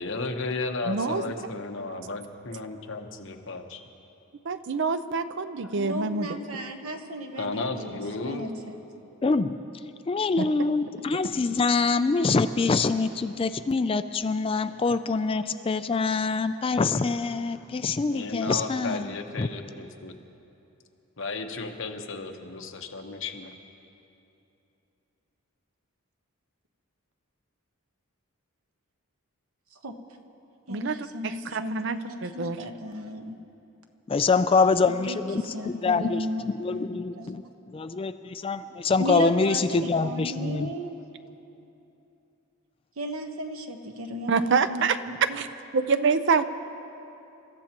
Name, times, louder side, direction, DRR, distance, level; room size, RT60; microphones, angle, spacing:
voice 1, 0.0-3.8 5.6-5.7 7.4-8.4 18.0-20.1 21.2-23.5, left 3 dB, 60° left, 4 dB, 1.1 m, -34 dB
voice 2, 0.9-1.2 4.4-6.3 10.4-10.5 30.7-32.6 44.3-45.5 45.7-46.4, right 5 dB, 55° right, 11 dB, 0.5 m, -26 dB
voice 3, 5.8-8.7 29.8-30.0 30.7-33.4 35.1-35.2 35.5-36.9 37.2-37.5 39.0-40.9 43.0-44.9 45.3-45.4, equal, 80° right, 5 dB, 1.2 m, -34 dB
voice 4, 9.2-9.7 10.1-19.5 34.1-37.4 37.7-40.7, left 4 dB, 25° left, 11 dB, 0.3 m, -25 dB
29.0 x 14.5 x 3.0 m, 2.9 s
head